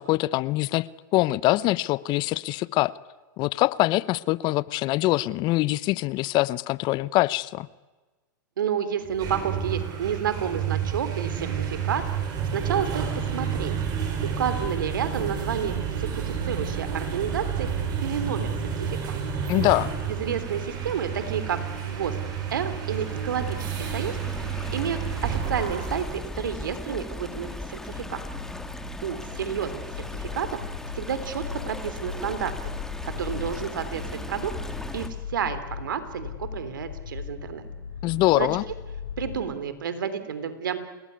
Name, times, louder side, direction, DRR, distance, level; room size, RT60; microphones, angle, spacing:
voice 1, 0.0-2.9 3.4-7.7 19.5-19.9 38.0-38.6, left 18 dB, 45° left, 20 dB, 0.8 m, -24 dB
voice 2, 8.6-12.0 12.5-13.0 13.3-13.8 14.4-17.7 18.0-19.2 20.1-22.2 22.5-24.2 24.7-28.2 29.0-30.5 30.9-32.6 33.0-34.0 34.3-34.5 34.9-37.6 38.4-38.5 39.2-40.8, right 8 dB, 80° right, 12 dB, 3.4 m, -30 dB
sound 1, 9.0-26.2, right 7 dB, 40° right, 7.9 m, -30 dB
Stream, 19.9-35.1, left 2 dB, 5° left, 2.4 m, -38 dB
sound 2, 27.9-39.4, left 7 dB, 90° left, 5.6 m, -38 dB
28.5 x 20.0 x 9.6 m, 1.2 s
hypercardioid pair, 110°, 11 cm